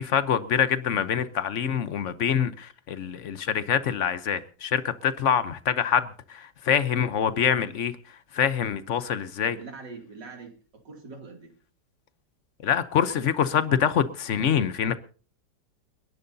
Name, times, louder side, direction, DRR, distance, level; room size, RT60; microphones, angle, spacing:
voice 1, 0.0-8.0 8.3-9.6 12.6-15.0, left 8 dB, 55° left, 0.9 m, -25 dB
voice 2, 9.5-11.5, right 4 dB, 75° right, 3.2 m, -43 dB
29.5 x 10.5 x 2.7 m
omnidirectional pair, 1.9 m